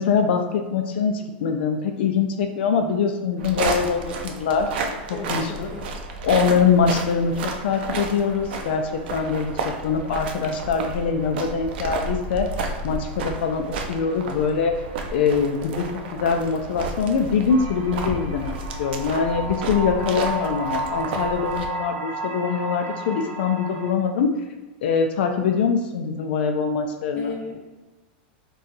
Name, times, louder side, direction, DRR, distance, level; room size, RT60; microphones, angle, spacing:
voice 1, 0.0-4.7 5.3-5.7 6.2-12.5 12.8-14.8 15.1-18.5 18.8-24.3 24.8-27.3, left 6 dB, 80° left, 5 dB, 0.4 m, -23 dB
sound 1, 3.4-21.7, right 3 dB, 75° right, 0.4 m, -32 dB
voice 2, 5.1-6.0 27.1-27.7, left 4 dB, 25° left, -1 dB, 0.5 m, -36 dB
sound 2, 17.5-23.9, right 2 dB, 50° right, 0.9 m, -32 dB
2.7 x 2.3 x 3.8 m, 1.2 s
supercardioid pair, 165°, 6 cm